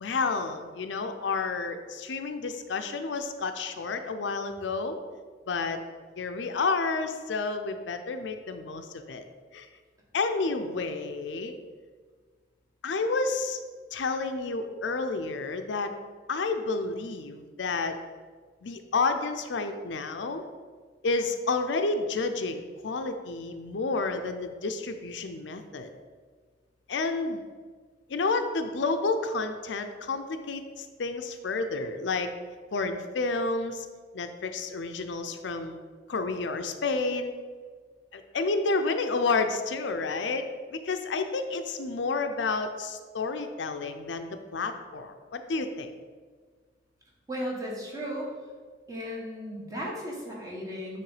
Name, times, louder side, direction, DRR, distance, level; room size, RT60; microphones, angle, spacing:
voice 1, 0.0-5.0 5.5-5.8 6.2-9.2 9.5-9.7 10.1-11.5 12.8-13.6 13.9-15.9 16.3-18.0 18.6-20.4 21.0-25.9 26.9-27.4 28.1-32.3 32.7-33.9 34.1-35.8 36.1-37.3 38.1-45.9, left 3 dB, 75° left, 7 dB, 0.5 m, -30 dB
voice 2, 47.3-48.3 48.9-51.0, equal, 20° right, -3 dB, 1.4 m, -35 dB
8.8 x 3.2 x 4.9 m, 1.5 s
head